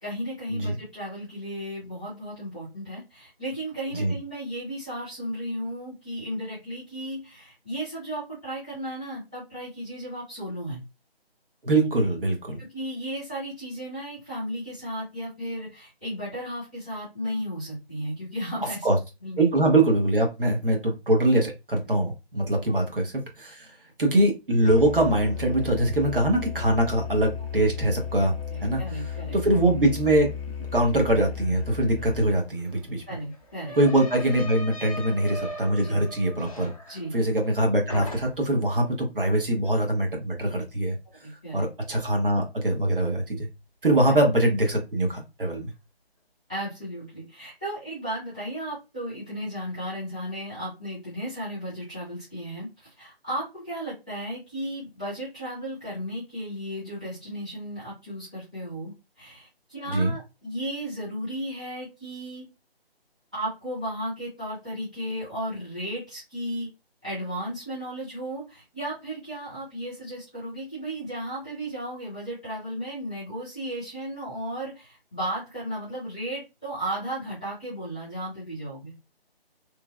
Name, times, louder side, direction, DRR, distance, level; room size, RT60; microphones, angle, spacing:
voice 1, 0.0-10.8 12.6-18.9 19.2-19.5 21.9-22.0 22.7-22.8 28.5-29.4 33.1-33.8 35.8-36.1 36.9-37.2 41.2-41.7 46.5-62.5 63.3-66.7 67.0-78.9, equal, 5° right, -13 dB, 0.6 m, -34 dB
voice 2, 11.6-12.6 18.8-19.0 19.4-23.7 24.0-28.3 28.6-28.8 29.3-30.3 30.7-33.0 33.8-36.7 37.1-41.0 41.5-43.5 43.8-45.7 59.9-60.1, right 1 dB, 60° right, 2 dB, 1.1 m, -23 dB
Musical instrument, 24.6-32.4, left 7 dB, 70° left, 0.7 m, -34 dB
sound 1, 32.0-32.1 32.4-37.6 37.9-38.6, left 1 dB, 35° left, 0.5 m, -40 dB
3.1 x 2.1 x 2.3 m, 0.25 s
figure-of-eight pair, 160°, 31 cm